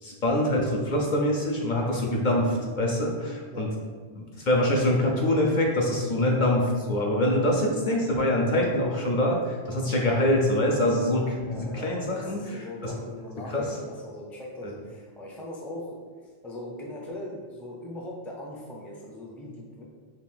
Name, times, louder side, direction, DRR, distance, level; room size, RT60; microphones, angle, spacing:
voice 1, 0.0-3.7 4.2-12.9 13.5-13.8 14.6-14.7, left 1 dB, 55° left, -1 dB, 0.6 m, -25 dB
voice 2, 11.4-16.0 16.4-19.8, left 1 dB, ahead, -2 dB, 0.4 m, -40 dB
5.3 x 2.5 x 3.4 m, 1.5 s
omnidirectional pair, 1.1 m